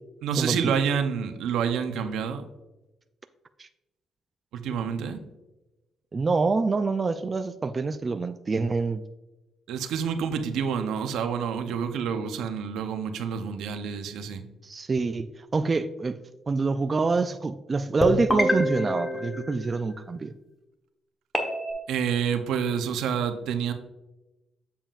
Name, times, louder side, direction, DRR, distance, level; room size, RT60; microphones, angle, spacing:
voice 1, 0.2-2.5 4.5-5.2 9.7-14.4 21.9-23.7, right 7 dB, 85° right, 8 dB, 0.7 m, -28 dB
voice 2, 6.1-9.0 14.6-16.1 16.5-20.3, right 4 dB, 30° right, 10 dB, 0.3 m, -26 dB
sound 1, 18.0-20.1 21.3-21.7, equal, 15° left, 1.1 m, -27 dB
7.4 x 7.0 x 2.4 m, 1.0 s
cardioid pair, 90°, 0 cm